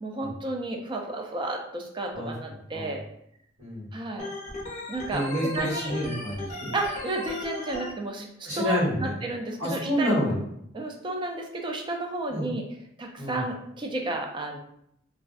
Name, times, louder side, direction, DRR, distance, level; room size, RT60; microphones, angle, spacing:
voice 1, 0.0-3.0 3.9-4.3 4.9-6.0 6.7-10.1 10.7-12.6 13.0-14.6, right 2 dB, 25° right, 2 dB, 0.3 m, -32 dB
voice 2, 3.6-3.9 5.1-6.7 8.4-9.1 9.6-10.4 12.3-12.5 13.2-13.4, equal, 85° right, -7 dB, 1.3 m, -28 dB
Organ, 4.2-7.9, left 1 dB, 40° left, 0.5 m, -36 dB
2.5 x 2.2 x 2.3 m, 0.73 s
head